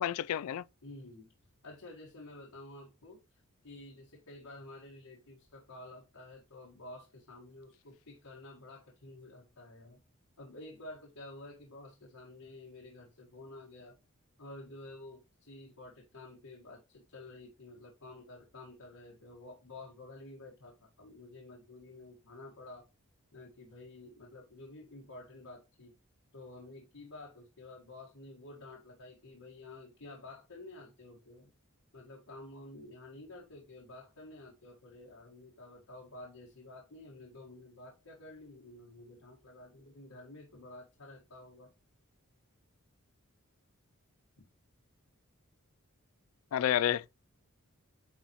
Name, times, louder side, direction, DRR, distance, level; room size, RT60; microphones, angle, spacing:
voice 1, 0.0-0.6 46.5-47.1, left 10 dB, 70° left, 0.3 m, -30 dB
voice 2, 0.8-1.3 1.6-3.2 3.6-10.0 10.4-13.9 14.4-22.8 23.3-25.9 26.3-31.5 31.9-41.7, left 2 dB, 85° left, 1.7 m, -51 dB
9.3 x 4.1 x 3.0 m
head